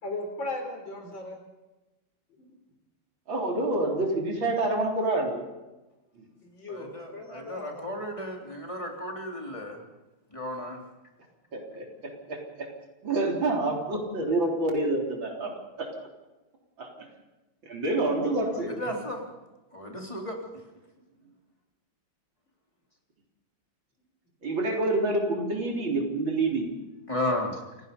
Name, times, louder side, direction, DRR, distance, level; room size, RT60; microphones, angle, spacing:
voice 1, 0.0-1.4 2.3-2.6 6.4-8.1, left 2 dB, 70° left, 3 dB, 5.0 m, -38 dB
voice 2, 3.3-5.4 6.1-6.3 11.5-12.7 13.0-16.1 16.8-17.1 17.6-18.9 24.4-26.7, right 2 dB, 75° right, 0 dB, 4.5 m, -28 dB
voice 3, 6.7-9.8 10.3-10.8 18.8-19.2 19.7-20.4 27.1-27.6, left 1 dB, 15° left, 0 dB, 3.4 m, -33 dB
28.5 x 17.0 x 5.4 m, 1.1 s
omnidirectional pair, 2.2 m